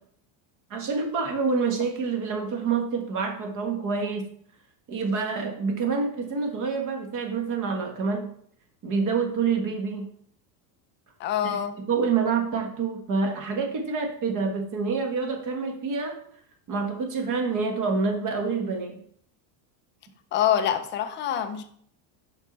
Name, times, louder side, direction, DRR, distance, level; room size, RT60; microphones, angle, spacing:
voice 1, 0.7-4.3 4.9-8.3 8.8-10.1 11.4-11.6 11.9-16.2 16.7-19.0, right 5 dB, 40° right, 1.3 m, -27 dB
voice 2, 11.2-11.7 20.3-21.6, left 10 dB, 25° left, 0.3 m, -25 dB
6.0 x 5.7 x 3.9 m
cardioid pair, 155°, 48 cm